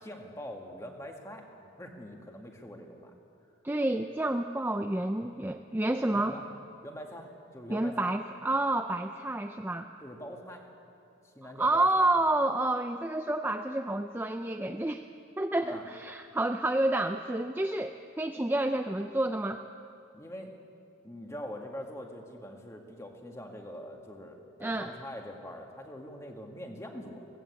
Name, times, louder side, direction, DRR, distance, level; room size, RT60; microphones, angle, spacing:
voice 1, 0.0-3.1 6.1-6.5 6.8-8.1 10.0-10.7 11.2-12.1 15.6-15.9 20.1-20.5 21.0-27.3, equal, 15° left, 2 dB, 1.9 m, -43 dB
voice 2, 3.6-6.4 7.7-9.9 11.6-15.1 15.4-19.6 24.6-24.9, right 2 dB, 10° right, 6 dB, 0.4 m, -29 dB
21.0 x 17.0 x 8.4 m, 2.6 s
head